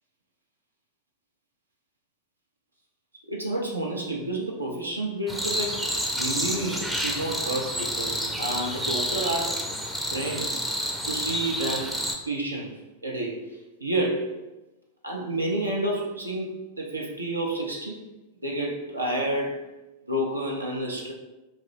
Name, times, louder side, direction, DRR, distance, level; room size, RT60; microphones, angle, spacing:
voice 1, 3.3-9.7 10.1-10.6 11.1-12.7 13.0-14.4 15.0-18.0 18.4-19.7 20.1-21.1, right 1 dB, 85° right, -1 dB, 0.5 m, -30 dB
sound 1, 5.3-12.1, equal, 5° right, 0.5 m, -29 dB
3.6 x 2.5 x 3.2 m, 1.1 s
figure-of-eight pair, 90°, 0 cm